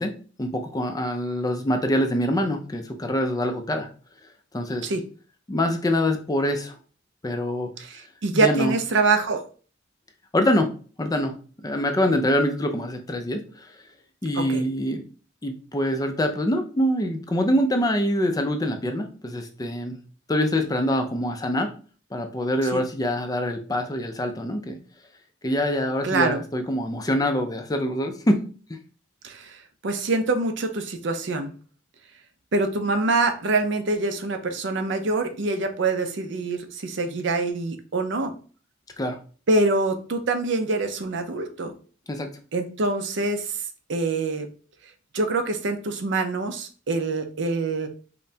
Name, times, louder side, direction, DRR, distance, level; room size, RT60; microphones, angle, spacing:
voice 1, 0.0-3.9 4.5-4.9 5.5-6.8 7.2-7.7 8.3-8.8 10.3-10.7 11.0-13.8 14.2-15.0 15.4-20.0 20.3-21.7 22.1-24.8 25.4-28.4 39.0-39.2 42.1-42.3, left 1 dB, 20° left, 5 dB, 0.4 m, -25 dB
voice 2, 7.8-9.4 14.3-14.6 22.7-22.8 26.0-26.4 29.2-29.6 29.8-31.5 32.5-38.3 39.5-41.7 42.5-43.6 43.9-44.5 45.1-47.9, right 3 dB, 65° right, 7 dB, 0.6 m, -25 dB
5.2 x 2.1 x 2.7 m, 0.39 s
head